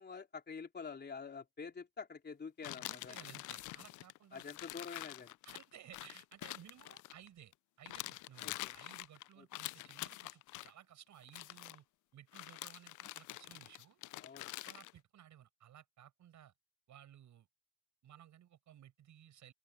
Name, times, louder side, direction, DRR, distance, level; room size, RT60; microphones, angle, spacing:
voice 1, 0.0-3.2 4.3-5.3 8.4-8.7 9.4-9.5 14.2-14.5, left 5 dB, 35° left, 3.5 m, -47 dB
sound 1, 2.6-7.5 7.9-10.7 11.2-11.8 12.3-14.9, left 18 dB, 80° left, 0.5 m, -46 dB
voice 2, 2.8-4.4 5.4-11.9 12.1-14.0 14.6-16.5 16.9-17.5 18.0-19.5, right 11 dB, 70° right, 7.0 m, -58 dB
open air
cardioid pair, 90°, 30 cm